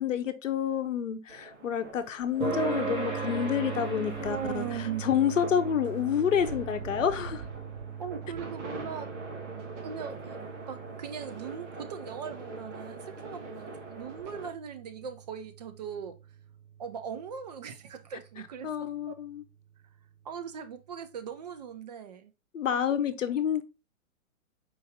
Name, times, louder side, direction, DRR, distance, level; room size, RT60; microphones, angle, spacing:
voice 1, 0.0-4.7 5.0-7.4 18.6-19.4 22.5-23.6, left 8 dB, 65° left, 0.8 m, -28 dB
sound 1, 1.3-14.5, right 2 dB, 60° right, 1.5 m, -44 dB
sound 2, 2.4-17.3, right 5 dB, 10° right, 1.1 m, -39 dB
voice 2, 4.3-5.1 8.0-9.1 9.8-10.4 10.7-16.2 16.8-19.2 20.2-22.3, right 7 dB, 30° right, 0.5 m, -39 dB
4.6 x 2.7 x 3.5 m
figure-of-eight pair, 115°, 42 cm